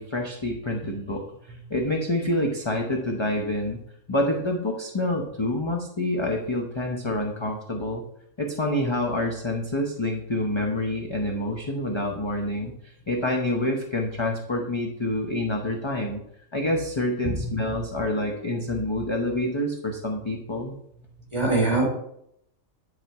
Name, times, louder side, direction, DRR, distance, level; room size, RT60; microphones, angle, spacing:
voice 1, 0.0-3.8 4.1-8.0 8.4-16.2 16.5-20.7, left 1 dB, 30° left, 1 dB, 0.6 m, -27 dB
voice 2, 21.3-21.9, right 2 dB, 20° right, -2 dB, 3.2 m, -23 dB
10.5 x 4.2 x 4.6 m, 0.74 s
omnidirectional pair, 1.5 m